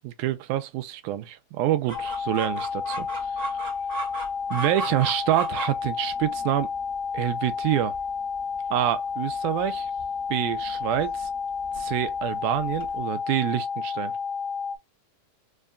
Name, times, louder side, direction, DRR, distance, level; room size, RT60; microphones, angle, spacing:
voice 1, 0.0-3.1 4.5-6.7 7.1-7.9 8.7-9.9 10.3-11.3 11.8-14.1, right 13 dB, 80° right, 1.8 m, -27 dB
sound 1, 1.9-14.8, left 6 dB, 85° left, 1.8 m, -31 dB
Chicken rooster, 1.9-13.0, right 3 dB, 55° right, 1.0 m, -39 dB
5.4 x 2.2 x 2.4 m
omnidirectional pair, 4.0 m